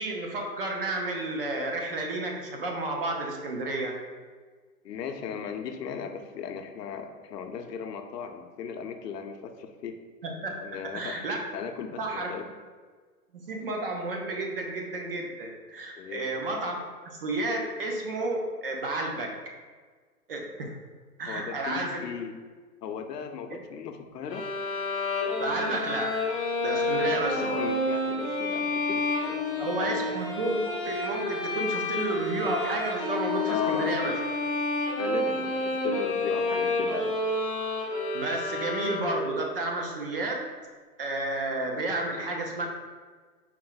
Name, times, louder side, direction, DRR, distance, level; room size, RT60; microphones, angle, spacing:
voice 1, 0.0-3.9 10.2-10.5 10.9-11.4 12.0-12.3 13.4-16.8 17.0-19.3 20.3-20.7 21.2-22.0 23.5-23.6 25.4-26.1 26.6-27.6 29.6-34.1 38.1-40.4 41.0-42.7, right 2 dB, 40° right, 1 dB, 0.4 m, -31 dB
voice 2, 4.8-10.0 10.6-11.1 11.5-12.4 16.0-16.2 21.3-22.4 22.8-24.5 27.4-30.0 33.5-34.0 35.0-37.3, left 7 dB, 85° left, 6 dB, 0.6 m, -37 dB
sound 1, 24.3-39.4, left 2 dB, 25° left, 0.4 m, -29 dB
4.3 x 2.0 x 3.9 m, 1.5 s
hypercardioid pair, 145°, 47 cm